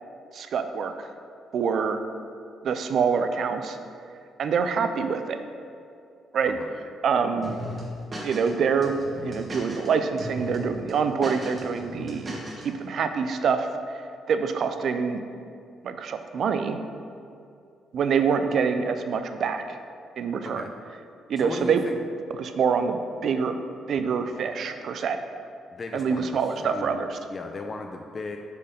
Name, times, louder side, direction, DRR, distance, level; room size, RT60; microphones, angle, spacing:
voice 1, 0.3-1.1 1.5-2.0 2.6-3.8 4.4-5.4 6.3-6.6 7.0-7.5 8.2-8.9 9.2-12.3 12.6-13.7 14.3-15.2 15.8-16.8 17.9-19.8 20.2-20.6 21.3-21.8 22.4-23.0 23.2-23.6 23.9-25.2 25.9-27.2, right 6 dB, 65° right, 8 dB, 0.4 m, -25 dB
sound 1, 7.4-8.5 8.8-9.9 10.2-10.6 10.9-12.6, equal, 30° right, 1.5 m, -37 dB
voice 2, 21.4-22.0 25.7-28.4, left 3 dB, 35° left, 4 dB, 0.3 m, -36 dB
5.3 x 4.4 x 5.0 m, 2.4 s
cardioid pair, 90°, 0 cm